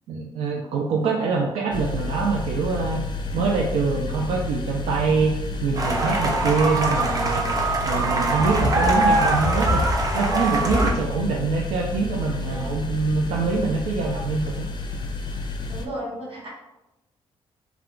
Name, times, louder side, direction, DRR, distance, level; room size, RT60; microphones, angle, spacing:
voice 1, 0.1-3.0 3.3-5.3 5.6-7.4 7.8-9.9 10.1-14.6, right 4 dB, 85° right, -1 dB, 0.4 m, -24 dB
sound 1, 1.7-15.9, left 3 dB, 45° left, 0.4 m, -31 dB
sound 2, 5.7-10.9, right 1 dB, 35° right, 0.6 m, -22 dB
voice 2, 12.5-12.8 15.7-16.5, right 1 dB, 60° right, -4 dB, 1.2 m, -35 dB
2.3 x 2.3 x 3.6 m, 0.93 s
cardioid pair, 85°, 11 cm